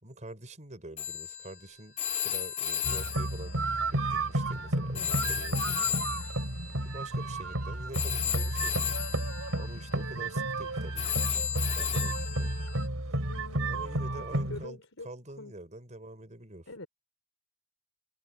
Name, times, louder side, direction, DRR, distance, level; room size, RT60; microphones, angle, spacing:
voice 1, 0.0-3.6 3.9-5.6 6.8-9.1 9.6-11.3 11.8-12.6 13.7-16.7, right 1 dB, 35° right, 5.0 m, -46 dB
Telephone, 1.0-4.6 4.9-12.9, left 9 dB, 30° left, 2.9 m, -35 dB
sound 1, 2.8-14.6, right 2 dB, 80° right, 3.7 m, -32 dB
voice 2, 13.3-14.2 14.5-15.5 16.7-16.9, left 2 dB, 70° left, 4.3 m, -45 dB
head